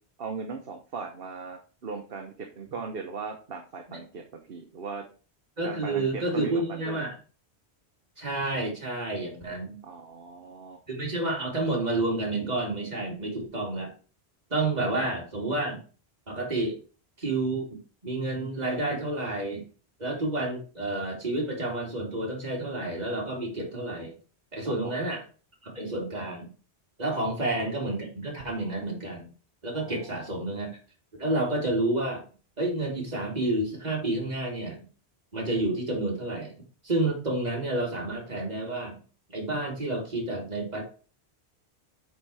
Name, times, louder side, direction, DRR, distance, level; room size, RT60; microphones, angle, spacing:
voice 1, 0.2-5.1 5.6-7.1 9.8-10.8 24.6-24.9 27.1-27.2 29.7-30.2, right 5 dB, 60° right, 3 dB, 1.1 m, -38 dB
voice 2, 5.6-7.1 8.2-9.8 10.9-13.9 14.5-15.8 16.3-16.8 17.2-17.7 18.0-19.6 20.0-24.1 24.5-25.2 25.6-26.5 27.0-29.3 29.6-30.7 31.2-32.3 32.6-34.8 35.3-36.5 36.8-39.0 39.3-40.8, right 2 dB, 40° right, -1 dB, 2.6 m, -30 dB
8.2 x 4.2 x 4.7 m, 0.37 s
omnidirectional pair, 1.1 m